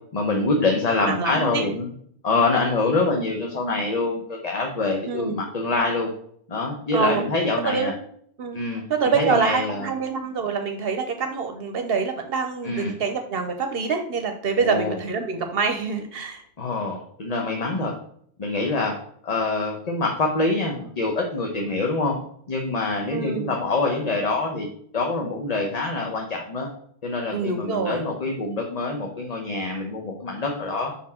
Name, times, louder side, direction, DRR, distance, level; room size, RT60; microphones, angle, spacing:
voice 1, 0.1-1.9 2.2-6.1 6.5-7.9 8.5-8.8 9.1-9.9 12.6-12.9 14.6-15.0 16.6-17.9 18.4-18.9 19.2-22.2 22.5-24.7 24.9-26.7 27.0-30.9, left 3 dB, 45° left, 1 dB, 0.8 m, -25 dB
voice 2, 1.1-1.6 5.1-5.4 6.9-7.2 7.7-7.9 8.4-8.6 8.9-16.4 23.1-23.5 27.3-28.0, right 5 dB, 70° right, 5 dB, 0.9 m, -25 dB
5.5 x 4.3 x 4.2 m, 0.65 s
omnidirectional pair, 1.0 m